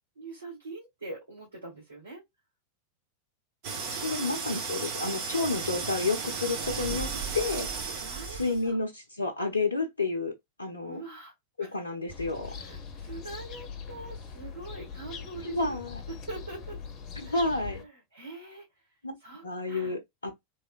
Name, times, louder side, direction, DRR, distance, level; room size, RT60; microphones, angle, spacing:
voice 1, 0.2-2.2 4.1-4.5 7.9-8.8 10.8-11.8 12.5-15.8 16.1-16.8 17.2-17.5 17.8-18.7 19.2-20.0, right 3 dB, 70° right, 1.8 m, -44 dB
sound 1, 3.6-8.7, right 5 dB, 45° right, 1.0 m, -34 dB
voice 2, 3.9-7.7 8.3-11.0 11.6-12.5 15.4-15.9 17.3-17.8 19.0-19.1 19.4-20.3, left 3 dB, 75° left, 0.5 m, -30 dB
sound 2, 12.1-17.9, left 5 dB, 35° left, 0.8 m, -42 dB
3.1 x 2.8 x 2.4 m
figure-of-eight pair, 90°, 0 cm